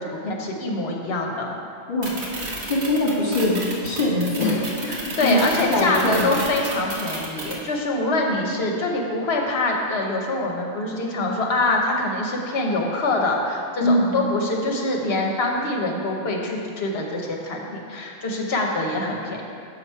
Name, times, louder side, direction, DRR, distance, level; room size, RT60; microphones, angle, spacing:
voice 1, 0.2-1.5 4.9-19.4, left 2 dB, 70° left, 0 dB, 1.1 m, -24 dB
voice 2, 1.9-2.2 2.7-4.6 4.9-5.4 5.7-6.2 13.8-14.1, left 1 dB, 50° left, -5 dB, 1.6 m, -22 dB
sound 1, 2.0-7.5, right 2 dB, 75° right, 1.4 m, -31 dB
6.6 x 5.9 x 4.5 m, 2.5 s
omnidirectional pair, 1.1 m